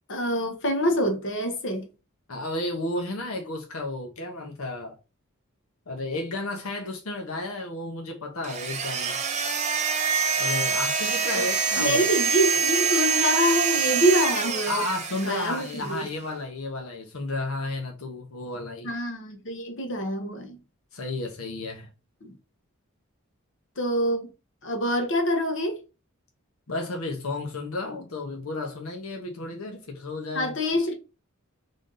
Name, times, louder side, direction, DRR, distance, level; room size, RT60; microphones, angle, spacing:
voice 1, 0.1-1.9 11.3-11.5 11.8-14.8 15.2-16.1 18.8-20.6 22.2-22.3 23.8-24.3 24.6-25.8 30.3-30.9, equal, 60° left, 1.1 m, -25 dB
voice 2, 2.3-5.0 5.9-9.2 10.4-12.1 14.7-18.9 20.9-21.9 26.7-30.5, left 2 dB, 80° left, 1.0 m, -32 dB
sound 1, 8.4-15.8, right 6 dB, 35° right, 0.7 m, -25 dB
3.8 x 3.6 x 3.8 m
head